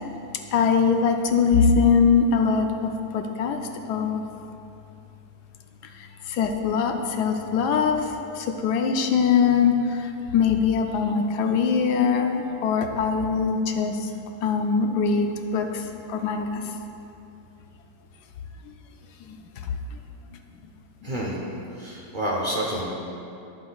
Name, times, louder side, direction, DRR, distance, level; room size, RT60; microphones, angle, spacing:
voice 1, 0.5-3.6 3.9-4.2 6.3-8.0 8.4-14.1 14.4-15.3 15.5-15.8 16.1-16.5, left 6 dB, 75° left, 4 dB, 1.1 m, -22 dB
voice 2, 21.0-21.4 21.8-22.8, right 1 dB, 40° right, -4 dB, 0.7 m, -28 dB
11.0 x 7.6 x 2.3 m, 2.8 s
omnidirectional pair, 1.8 m